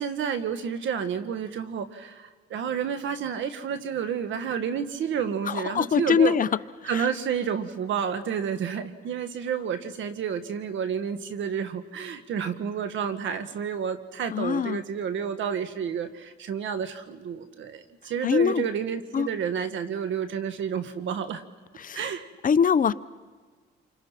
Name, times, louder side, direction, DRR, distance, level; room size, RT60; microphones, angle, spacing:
voice 1, 0.0-6.4 6.8-21.4 21.9-22.3, right 7 dB, 75° right, 1.7 m, -30 dB
voice 2, 5.5-6.5 6.9-7.1 14.3-14.8 18.2-18.7 19.1-19.3 21.8-22.0 22.4-22.9, left 7 dB, 45° left, 0.7 m, -23 dB
28.0 x 25.5 x 6.0 m
cardioid pair, 90°, 20 cm